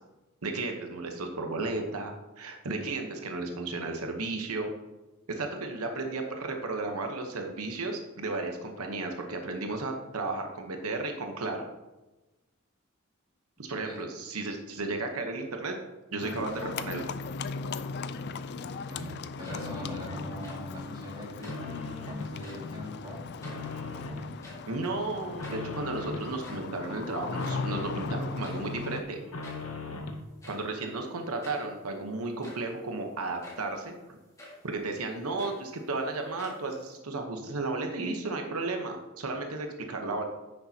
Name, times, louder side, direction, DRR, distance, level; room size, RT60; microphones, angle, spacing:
voice 1, 0.4-4.7 5.3-11.6 13.6-15.8 16.1-17.0 24.7-29.2 30.4-34.2 34.6-40.2, right 3 dB, 85° right, 4 dB, 1.0 m, -34 dB
Livestock farm animals working animals, 16.2-29.0, left 4 dB, 50° left, 0.4 m, -38 dB
sound 1, 17.5-18.4 18.8-20.4 20.8-22.4 22.8-24.3 24.7-26.3 26.7-28.3 28.7-30.3, left 3 dB, 75° left, 0.8 m, -41 dB
voice 2, 18.5-23.3 26.1-26.2, equal, 20° right, -3 dB, 2.2 m, -42 dB
sound 2, 19.2-19.9 20.3-20.8 21.3-21.8 22.3-22.8 23.2-24.0 24.2-24.9 25.1-25.2 25.4-25.8 26.2-27.8 28.4-28.8 29.4-29.8 30.4-30.8 31.4-31.7 32.2-32.8 33.4-33.8 34.4-34.7 35.1-36.0 36.4-37.0, left 1 dB, 15° left, 1.6 m, -50 dB
10.0 x 6.6 x 2.8 m, 1.1 s
head